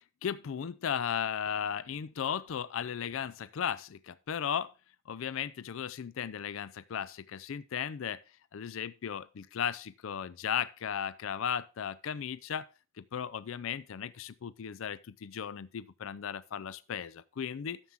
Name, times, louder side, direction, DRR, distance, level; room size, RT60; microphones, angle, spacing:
voice 1, 0.0-4.7 5.1-8.2 8.5-12.7 13.0-17.8, left 8 dB, 70° left, 0.4 m, -36 dB
13.0 x 7.2 x 3.6 m
head